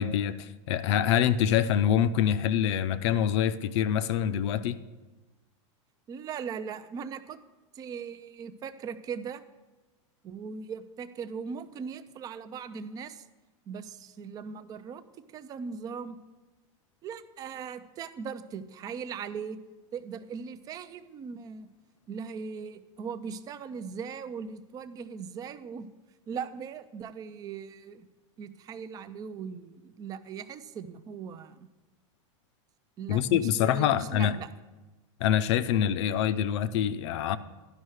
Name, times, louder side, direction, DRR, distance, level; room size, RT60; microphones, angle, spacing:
voice 1, 0.0-4.8 33.1-34.4 35.2-37.4, left 9 dB, 60° left, 0.5 m, -25 dB
voice 2, 6.1-7.4 7.8-9.4 10.2-13.2 13.7-15.0 15.3-16.2 17.0-19.6 19.9-21.7 22.1-25.9 26.3-28.1 28.4-31.7 33.0-34.5, right 6 dB, 25° right, 0.4 m, -39 dB
11.5 x 5.5 x 6.3 m
supercardioid pair, 145°, 16 cm